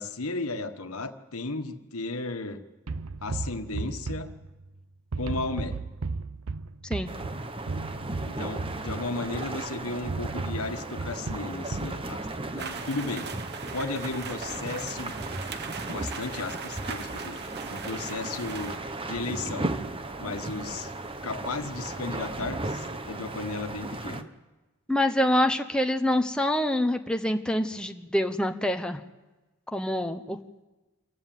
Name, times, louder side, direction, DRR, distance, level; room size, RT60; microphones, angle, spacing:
voice 1, 0.0-2.6 3.2-4.3 5.2-5.8 8.2-13.3 13.7-15.1 15.9-17.4 17.7-18.8 19.0-19.7 20.2-20.9 21.2-24.3, left 3 dB, 80° left, 8 dB, 1.5 m, -34 dB
sound 1, 2.9-4.8 5.1-9.6 10.1-12.0, right 3 dB, 75° right, 0.7 m, -35 dB
sound 2, 7.1-24.2, right 2 dB, 25° right, 1.0 m, -36 dB
sound 3, 12.6-18.8, right 6 dB, 50° right, 1.1 m, -41 dB
voice 2, 24.9-29.0 29.7-30.4, left 1 dB, 5° left, 5 dB, 0.8 m, -26 dB
26.0 x 15.0 x 9.2 m, 1.2 s
head